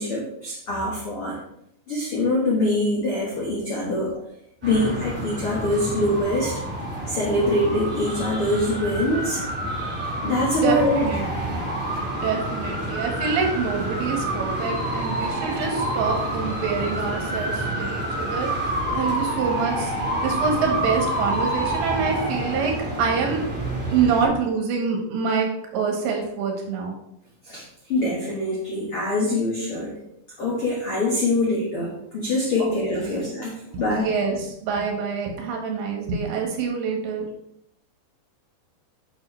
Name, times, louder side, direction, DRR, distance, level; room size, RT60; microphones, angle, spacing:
voice 1, 0.0-1.4 1.9-4.1 4.6-6.6 7.1-9.4 10.2-11.0 27.4-30.0 30.4-34.1, left 1 dB, 70° left, -5 dB, 1.3 m, -24 dB
sound 1, 4.6-24.3, right 1 dB, 25° right, 2.0 m, -28 dB
voice 2, 10.5-11.6 12.2-23.4 23.9-25.5 25.7-26.9 32.6-32.8 33.0-33.2 33.7-37.3, right 5 dB, 80° right, 1 dB, 3.7 m, -26 dB
9.4 x 6.2 x 3.3 m, 0.77 s
omnidirectional pair, 5.1 m